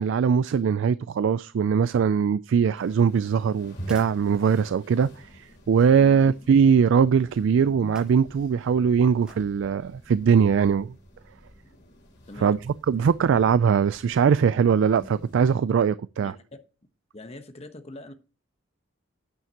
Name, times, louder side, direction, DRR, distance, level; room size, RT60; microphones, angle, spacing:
voice 1, 0.0-10.9 12.4-12.6 12.9-16.3, right 6 dB, 65° right, 0.3 m, -21 dB
sound 1, 2.6-5.1 5.8-6.1 7.8-8.3 9.2-9.6 10.1-10.2, equal, 5° right, 5.8 m, -53 dB
sound 2, 2.8-15.6, right 1 dB, 60° left, 3.4 m, -47 dB
voice 2, 12.3-12.6 13.0-13.1 16.2-16.6 17.1-18.1, left 1 dB, 30° left, 1.1 m, -42 dB
9.2 x 9.1 x 2.9 m
head